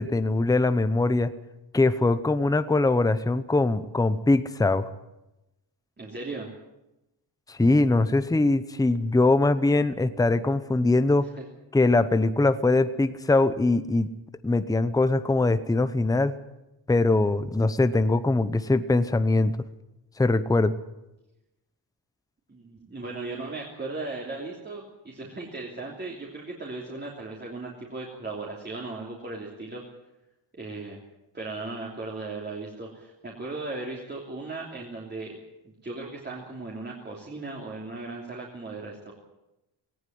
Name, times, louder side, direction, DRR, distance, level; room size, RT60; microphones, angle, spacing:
voice 1, 0.0-1.3 1.7-4.9 7.5-11.3 11.7-14.1 14.4-16.4 16.9-19.6 20.2-20.7, left 2 dB, 10° left, 12 dB, 0.8 m, -22 dB
voice 2, 6.0-6.5 11.4-11.5 22.5-29.8 30.5-31.0 31.3-35.4 35.6-39.1, right 3 dB, 20° right, -2 dB, 3.1 m, -37 dB
18.5 x 18.5 x 9.5 m, 0.92 s
wide cardioid pair, 155°, 46 cm